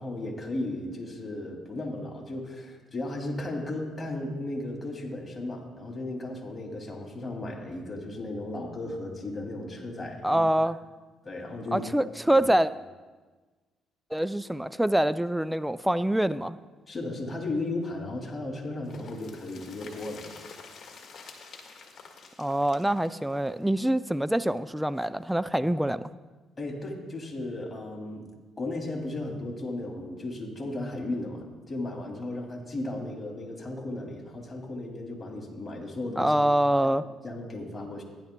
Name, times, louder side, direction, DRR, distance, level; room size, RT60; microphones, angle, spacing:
voice 1, 0.0-10.4 11.2-11.9 12.3-12.4 16.9-20.2 26.6-28.3 28.6-36.5 36.8-36.9 37.2-38.0, left 2 dB, 25° left, -1 dB, 2.6 m, -35 dB
voice 2, 10.2-10.8 11.7-12.7 14.1-16.6 22.4-26.1 36.2-37.0, right 1 dB, 5° right, 14 dB, 0.3 m, -25 dB
sound 1, 18.8-24.6 24.9-25.0 25.3-25.4, left 5 dB, 55° left, 1.6 m, -48 dB
15.5 x 10.5 x 2.2 m, 1.3 s
cardioid pair, 80°, 0 cm